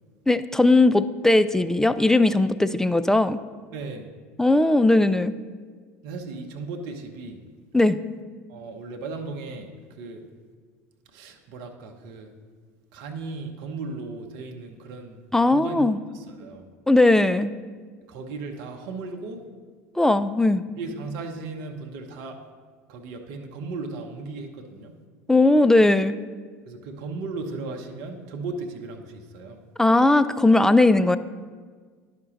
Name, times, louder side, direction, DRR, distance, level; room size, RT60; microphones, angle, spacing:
voice 1, 0.3-3.4 4.4-5.3 7.7-8.0 15.3-16.0 16.9-17.5 20.0-20.6 25.3-26.2 29.8-31.2, left 2 dB, 5° left, 12 dB, 0.3 m, -18 dB
voice 2, 3.7-4.1 6.0-7.4 8.5-9.7 10.0-10.2 11.1-12.3 12.9-15.2 15.5-15.8 16.1-16.6 18.1-19.4 20.8-22.4 22.9-24.9 26.7-29.6, right 3 dB, 60° right, 4 dB, 0.8 m, -36 dB
11.0 x 5.0 x 3.0 m, 1.5 s
hypercardioid pair, 75°, 8 cm